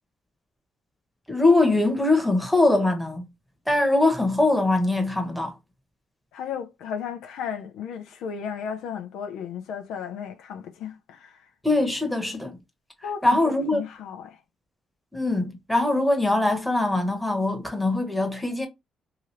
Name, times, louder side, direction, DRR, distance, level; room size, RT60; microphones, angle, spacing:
voice 1, 1.3-3.2 3.7-5.5 11.6-12.5 13.2-13.8 15.1-18.7, left 2 dB, 5° left, 1.0 m, -22 dB
voice 2, 6.3-11.5 13.0-14.4, left 7 dB, 90° left, 0.5 m, -34 dB
2.8 x 2.5 x 3.1 m
cardioid pair, 90°, 0 cm